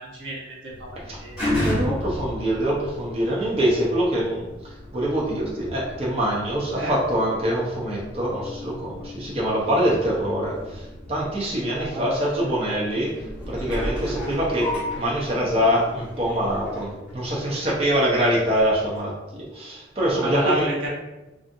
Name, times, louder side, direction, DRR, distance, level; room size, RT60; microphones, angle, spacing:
voice 1, 0.0-1.4 6.7-7.0 11.7-12.3 12.6-12.9 20.2-20.9, right 1 dB, 85° right, -4 dB, 0.8 m, -30 dB
sound 1, 0.7-18.0 18.6-18.7, left 1 dB, 5° right, 1.2 m, -34 dB
voice 2, 1.6-4.4 4.9-10.8 11.1-13.1 13.5-14.7 15.0-20.6, equal, 30° right, -5 dB, 0.5 m, -24 dB
2.5 x 2.4 x 2.5 m, 1.0 s
head